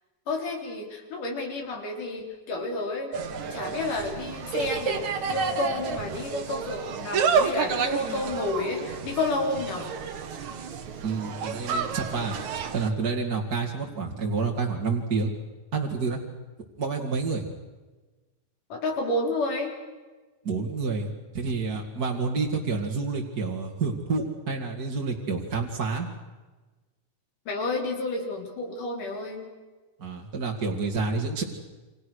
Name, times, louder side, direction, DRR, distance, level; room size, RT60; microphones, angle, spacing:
voice 1, 0.3-3.2 3.5-5.0 5.3-9.9 18.7-19.7 27.5-29.5, left 2 dB, 70° left, 1 dB, 5.4 m, -30 dB
Insect, 3.1-12.9, right 6 dB, 60° right, 2.9 m, -30 dB
voice 2, 11.0-12.4 12.7-15.3 15.7-16.2 16.8-17.4 20.4-26.1 30.0-31.4, right 4 dB, 30° right, -1 dB, 2.3 m, -29 dB
29.0 x 26.5 x 6.5 m, 1.2 s
omnidirectional pair, 3.9 m